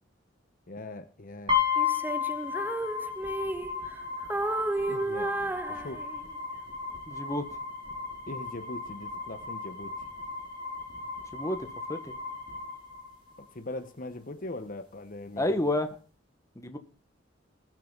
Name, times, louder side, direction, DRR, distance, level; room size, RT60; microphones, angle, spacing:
voice 1, 0.7-1.9 4.9-6.0 8.3-10.0 13.4-15.6, left 2 dB, 45° left, 9 dB, 1.0 m, -41 dB
sound 1, 1.5-13.5, left 6 dB, 25° right, 5.1 m, -34 dB
Female singing, 1.8-4.0 4.3-6.4, right 2 dB, 10° right, 0.6 m, -32 dB
voice 2, 7.1-7.5 11.3-12.1 15.4-15.9 16.6-16.8, left 1 dB, 15° left, 7 dB, 1.4 m, -30 dB
21.0 x 7.7 x 3.9 m, 0.37 s
head